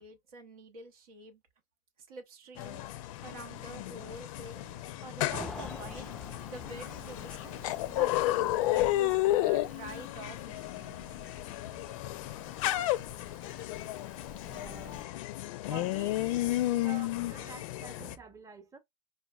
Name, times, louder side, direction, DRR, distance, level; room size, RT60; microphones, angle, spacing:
voice 1, 0.0-1.4 2.1-2.9 3.2-11.1, right 3 dB, 90° right, 0.8 m, -47 dB
sound 1, 2.6-18.1, left 16 dB, 75° left, 0.4 m, -32 dB
Cricket / Motor vehicle (road), 5.3-15.0, left 1 dB, 5° left, 0.3 m, -50 dB
voice 2, 14.5-15.0 15.5-18.8, right 6 dB, 20° right, 0.7 m, -49 dB
4.8 x 2.2 x 2.2 m
hypercardioid pair, 90°, 17 cm